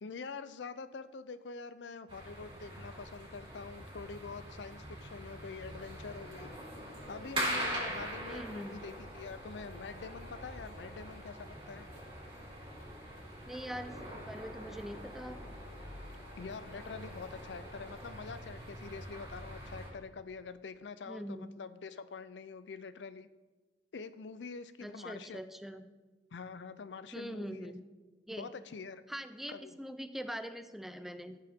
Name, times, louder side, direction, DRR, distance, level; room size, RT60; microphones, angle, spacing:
voice 1, 0.0-6.6 7.1-11.9 16.4-23.3 23.9-25.4 26.3-27.7 28.4-29.0 29.5-29.8, left 5 dB, 80° left, 13 dB, 0.5 m, -45 dB
sound 1, 2.1-19.9, right 1 dB, 30° right, 3.7 m, -43 dB
sound 2, 6.5-18.0, left 1 dB, 50° left, 3.0 m, -56 dB
sound 3, 6.7-10.8, right 2 dB, 85° right, 1.3 m, -56 dB
voice 2, 8.3-8.8 13.5-15.4 21.1-21.5 24.8-25.9 27.1-27.8 28.3-28.6 29.1-31.4, equal, ahead, 10 dB, 0.4 m, -43 dB
15.0 x 7.6 x 3.6 m, 1.3 s
head